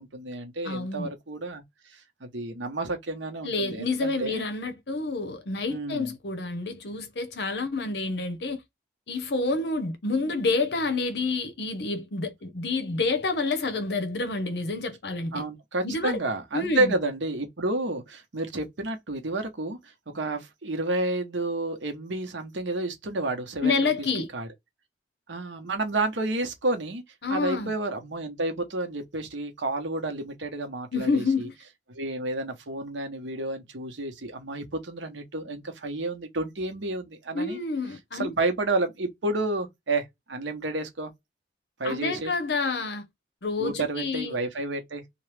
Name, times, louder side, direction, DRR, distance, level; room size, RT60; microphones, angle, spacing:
voice 1, 0.0-4.5 5.7-6.1 15.3-23.9 24.3-24.5 25.3-27.0 27.3-31.5 31.9-37.6 38.1-41.1 41.8-42.3 43.6-45.0, right 2 dB, 85° right, 0.9 m, -30 dB
voice 2, 0.6-1.1 3.4-8.6 9.1-15.4 15.8-16.2 16.5-16.9 23.6-24.3 27.2-27.7 30.9-31.5 37.3-38.3 41.8-43.0 43.4-44.4, left 3 dB, 60° left, 0.7 m, -28 dB
2.9 x 2.3 x 3.2 m
head